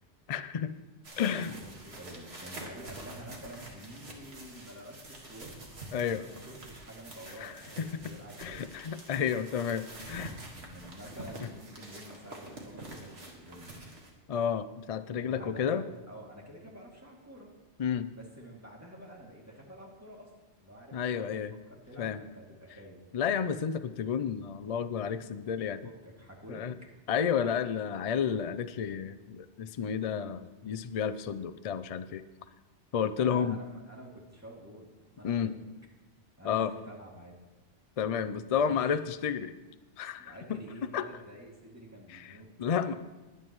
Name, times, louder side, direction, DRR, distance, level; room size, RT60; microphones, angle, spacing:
voice 1, 0.3-0.7 1.2-1.6 5.9-6.2 7.4-7.9 8.4-10.3 11.4-11.5 14.3-15.8 17.8-18.1 20.9-21.5 22.0-22.2 23.1-25.9 26.5-26.7 27.1-32.2 32.9-33.6 35.2-35.5 36.4-36.7 38.0-39.5 40.0-40.6 40.9-41.1 42.1-42.9, left 7 dB, 60° left, 12 dB, 0.3 m, -31 dB
sound 1, 1.0-14.1, right 2 dB, 60° right, 2.1 m, -47 dB
voice 2, 1.1-1.5 1.8-5.6 6.0-8.7 10.4-13.8 15.2-17.5 18.1-20.3 20.6-21.4 21.7-23.0 25.8-26.7 33.2-35.6 36.4-37.4 38.5-39.0 40.2-42.5, right 1 dB, 15° right, -3 dB, 2.5 m, -49 dB
21.5 x 9.3 x 3.1 m, 1.1 s
omnidirectional pair, 1.2 m